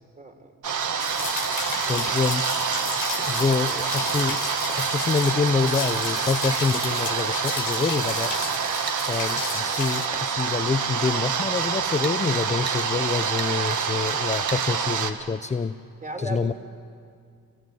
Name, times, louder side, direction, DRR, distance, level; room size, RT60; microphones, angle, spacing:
voice 1, 0.2-0.5 16.0-16.5, right 1 dB, 25° right, 5 dB, 3.8 m, -35 dB
sound 1, 0.6-15.1, right 6 dB, 60° right, 1.9 m, -27 dB
sound 2, 1.0-10.1, left 9 dB, 65° left, 1.8 m, -34 dB
voice 2, 1.9-2.5 3.2-4.4 4.7-8.3 9.1-15.8 16.2-16.5, left 4 dB, 20° left, 10 dB, 0.7 m, -26 dB
sound 3, 8.9-9.0 12.0-12.2 12.7-12.8 13.4-13.5 14.5-14.6, right 6 dB, 85° right, 3.2 m, -33 dB
25.0 x 18.5 x 9.5 m, 2.2 s
cardioid pair, 80°, 35 cm